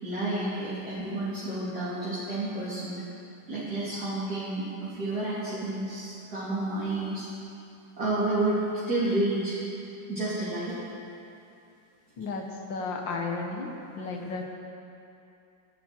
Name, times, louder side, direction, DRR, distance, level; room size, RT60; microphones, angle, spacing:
voice 1, 0.0-3.0 3.5-7.3 8.0-9.6 10.1-10.8, right 2 dB, 55° right, -12 dB, 3.9 m, -30 dB
voice 2, 12.2-14.4, left 3 dB, 85° left, 1 dB, 2.1 m, -33 dB
27.5 x 11.5 x 4.6 m, 2.7 s
omnidirectional pair, 2.0 m